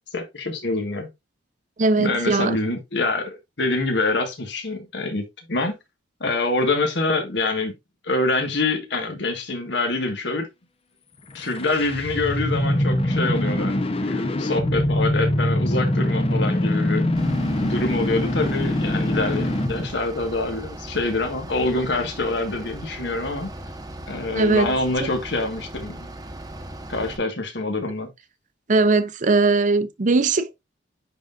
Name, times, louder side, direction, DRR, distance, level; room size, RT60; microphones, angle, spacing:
voice 1, 0.1-1.1 2.0-5.7 6.2-7.7 8.0-10.5 11.3-17.1 17.6-23.5 24.1-26.1 26.9-28.1, left 2 dB, 65° left, 1.6 m, -25 dB
voice 2, 1.8-2.6 24.3-24.7 25.0-25.1 28.7-30.6, right 3 dB, 45° right, 0.6 m, -20 dB
sound 1, 11.3-19.9, left 1 dB, 30° left, 0.8 m, -23 dB
Bus / Idling, 17.2-27.2, right 1 dB, 20° right, 0.9 m, -38 dB
9.9 x 3.9 x 2.5 m
head